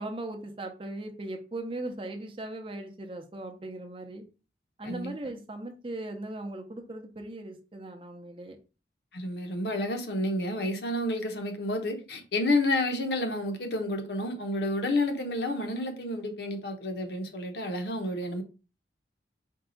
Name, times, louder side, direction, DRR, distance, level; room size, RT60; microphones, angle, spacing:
voice 1, 0.0-4.2 4.8-8.6, right 2 dB, 30° right, 0.6 m, -38 dB
voice 2, 4.8-5.1 9.1-18.4, left 1 dB, 70° left, 0.8 m, -30 dB
4.5 x 2.3 x 3.8 m
head